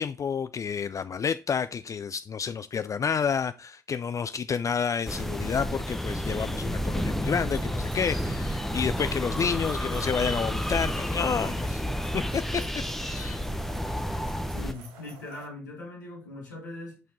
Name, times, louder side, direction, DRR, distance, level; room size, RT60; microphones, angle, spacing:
voice 1, 0.0-11.8 12.1-12.6 13.0-13.4, left 6 dB, 35° left, 0.3 m, -29 dB
sound 1, 5.1-14.7, equal, 5° left, 0.7 m, -30 dB
sound 2, 7.3-15.5, right 5 dB, 70° right, 1.0 m, -49 dB
voice 2, 14.5-17.0, left 2 dB, 85° left, 1.8 m, -40 dB
8.3 x 4.3 x 2.8 m
figure-of-eight pair, 45°, 10 cm